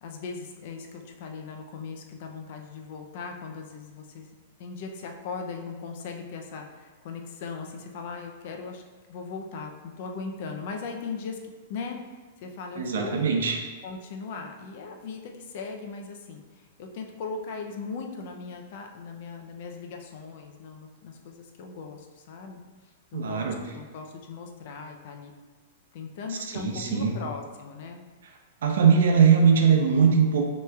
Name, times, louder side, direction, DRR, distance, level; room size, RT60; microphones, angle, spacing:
voice 1, 0.0-8.8 9.1-13.2 13.8-22.6 23.1-25.3 25.9-28.0, left 4 dB, 50° left, 3 dB, 0.5 m, -38 dB
voice 2, 12.8-13.6 23.1-23.6 26.5-27.1 28.6-30.4, right 6 dB, 85° right, 2 dB, 0.6 m, -20 dB
5.8 x 3.1 x 2.3 m, 1.3 s
supercardioid pair, 155°, 0 cm